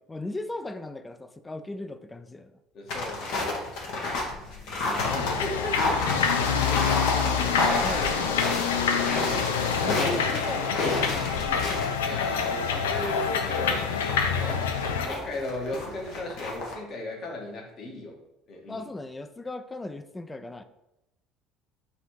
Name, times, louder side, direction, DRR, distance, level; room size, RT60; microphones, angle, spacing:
voice 1, 0.0-2.5 4.3-4.4 6.4-6.8 7.8-8.3 9.8-12.1 14.9-15.2 18.7-20.6, left 2 dB, 20° left, 10 dB, 0.4 m, -38 dB
voice 2, 2.7-3.7 3.9-5.9 7.8-8.4 9.8-10.4 10.8-11.0 12.0-18.1 18.5-18.8, left 2 dB, 50° left, 0 dB, 1.3 m, -36 dB
sound 1, 2.9-16.7, left 3 dB, 70° left, 1.0 m, -31 dB
sound 2, 5.0-15.1, left 6 dB, 90° left, 0.4 m, -27 dB
4.1 x 2.6 x 4.5 m, 0.89 s
hypercardioid pair, 70°, 0 cm